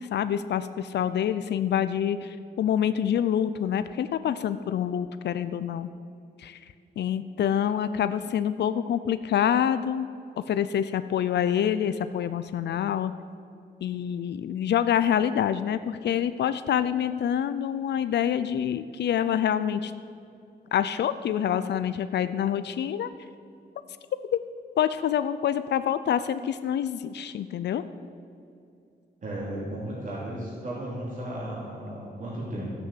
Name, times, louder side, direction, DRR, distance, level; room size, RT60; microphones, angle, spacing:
voice 1, 0.1-5.9 6.4-6.6 7.0-10.1 10.5-13.1 13.8-19.9 20.7-23.1 24.8-27.8, left 9 dB, 75° left, 12 dB, 0.5 m, -26 dB
voice 2, 29.2-32.7, right 1 dB, 45° right, -6 dB, 3.0 m, -35 dB
13.0 x 8.4 x 7.4 m, 2.5 s
wide cardioid pair, 135°, 18 cm